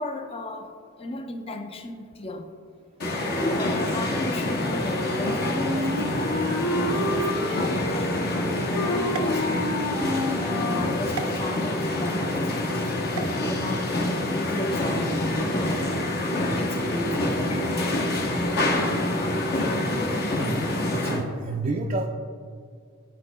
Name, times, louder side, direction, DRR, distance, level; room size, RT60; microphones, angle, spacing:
voice 1, 0.0-2.5 3.4-9.7 10.3-12.8 13.5-15.9 16.6-17.9, left 2 dB, 25° left, 0.5 m, -35 dB
sound 1, 3.0-21.2, left 1 dB, 45° left, 0.9 m, -26 dB
Wind instrument woodwind instrument, 5.1-11.0, left 1 dB, 80° left, 1.2 m, -29 dB
sound 2, 9.1-10.1 11.1-11.3 13.1-13.4, right 5 dB, 85° right, 0.6 m, -36 dB
voice 2, 20.9-22.1, right 2 dB, 30° right, 0.3 m, -28 dB
12.5 x 4.3 x 2.2 m
head